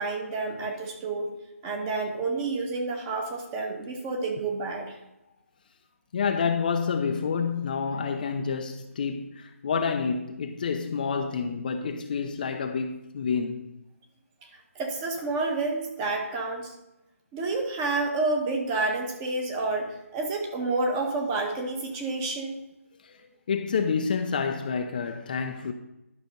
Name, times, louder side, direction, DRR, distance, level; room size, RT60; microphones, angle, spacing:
voice 1, 0.0-1.3 1.6-5.0 14.7-16.7 17.3-22.5, right 3 dB, 15° right, 1.4 m, -29 dB
voice 2, 6.1-13.7 23.0-25.7, left 5 dB, 35° left, 0.7 m, -28 dB
11.5 x 6.0 x 5.3 m
figure-of-eight pair, 160°, 8 cm